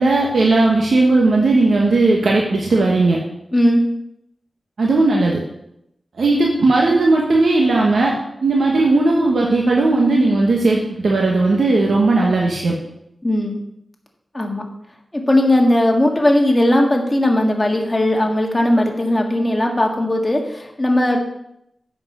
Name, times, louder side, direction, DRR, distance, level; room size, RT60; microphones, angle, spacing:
voice 1, 0.0-3.2 4.8-5.4 6.2-12.8, right 2 dB, 80° right, -2 dB, 1.2 m, -16 dB
voice 2, 3.5-3.8 13.2-13.6 14.3-14.7 15.1-21.2, left 1 dB, 20° left, 1 dB, 1.8 m, -17 dB
7.8 x 5.8 x 6.1 m, 0.80 s
wide cardioid pair, 80°, 0 cm